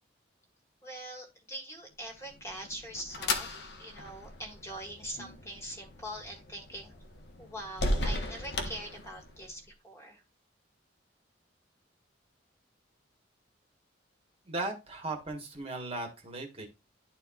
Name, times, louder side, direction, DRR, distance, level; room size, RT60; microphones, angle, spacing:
voice 1, 0.8-3.5 3.8-6.9 7.4-10.2, equal, 15° left, 1 dB, 1.7 m, -43 dB
sound 1, 2.2-9.6, left 2 dB, 60° left, 1.1 m, -37 dB
voice 2, 14.4-16.7, right 2 dB, 30° right, 2 dB, 1.5 m, -37 dB
11.5 x 4.3 x 2.4 m, 0.25 s
head